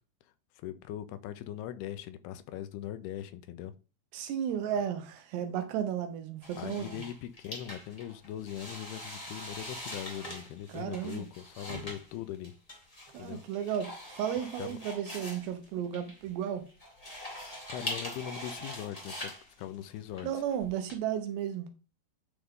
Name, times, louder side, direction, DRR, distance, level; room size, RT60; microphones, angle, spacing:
voice 1, 0.6-3.7 4.7-4.8 6.6-12.5 13.2-13.4 14.6-14.8 17.4-20.4, left 11 dB, 80° left, 2.6 m, -41 dB
voice 2, 4.1-7.0 10.7-11.3 13.1-16.7 20.2-21.7, right 9 dB, 90° right, 3.2 m, -34 dB
sound 1, 6.4-20.9, left 1 dB, 30° left, 0.6 m, -43 dB
10.0 x 4.6 x 3.7 m
omnidirectional pair, 4.7 m